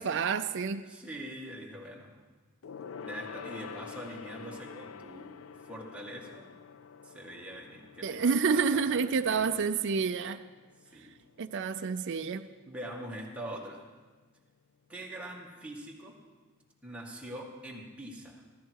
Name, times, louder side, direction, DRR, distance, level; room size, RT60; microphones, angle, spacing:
voice 1, 0.0-0.9 8.0-10.4 11.4-12.5, right 5 dB, 60° right, 8 dB, 0.5 m, -29 dB
voice 2, 0.9-2.1 3.0-5.4 5.6-6.5 7.0-9.6 10.8-11.1 12.7-13.9 14.9-16.2 16.8-18.4, right 1 dB, 5° right, -2 dB, 1.9 m, -43 dB
Gong, 2.6-12.4 12.7-13.0 13.3-13.4, left 6 dB, 70° left, 0.4 m, -48 dB
15.0 x 14.0 x 4.7 m, 1.3 s
head